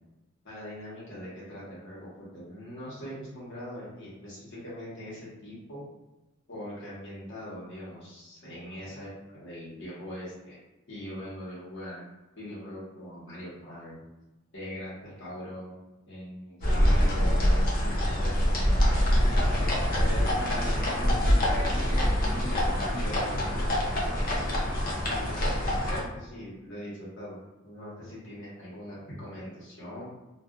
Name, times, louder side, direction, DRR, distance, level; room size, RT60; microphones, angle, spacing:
voice 1, 0.4-5.8 6.5-10.6 10.9-12.0 12.4-14.0 14.5-15.7 16.1-19.3 19.8-24.5 25.1-30.1, equal, 60° left, -8 dB, 1.2 m, -41 dB
sound 1, 16.6-26.0, equal, 45° left, 0.6 m, -25 dB
2.5 x 2.4 x 2.4 m, 1.1 s
head